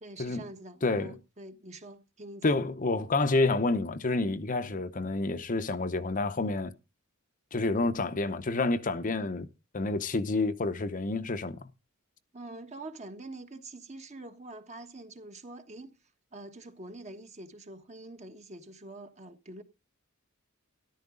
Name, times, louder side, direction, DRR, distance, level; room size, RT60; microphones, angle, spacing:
voice 1, 0.0-2.6 12.3-15.9 16.3-19.6, right 2 dB, 35° right, 1.3 m, -45 dB
voice 2, 0.8-1.1 2.4-6.7 7.5-9.5 9.7-11.6, left 3 dB, 40° left, 0.7 m, -29 dB
13.5 x 11.5 x 3.8 m
head